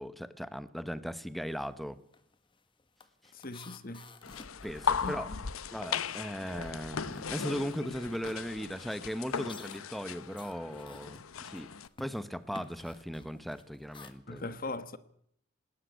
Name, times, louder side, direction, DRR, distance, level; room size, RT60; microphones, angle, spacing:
voice 1, 0.0-2.0 4.6-5.3 5.7-11.7 12.0-14.5, equal, ahead, 1.0 m, -38 dB
sound 1, 1.5-1.8 2.0-6.1 6.4-14.1, left 3 dB, 25° left, 1.5 m, -54 dB
voice 2, 3.3-4.1 5.0-5.4 14.3-15.0, left 2 dB, 40° left, 1.3 m, -40 dB
sound 2, 4.2-11.9, left 6 dB, 85° left, 0.8 m, -37 dB
19.5 x 18.5 x 8.3 m
head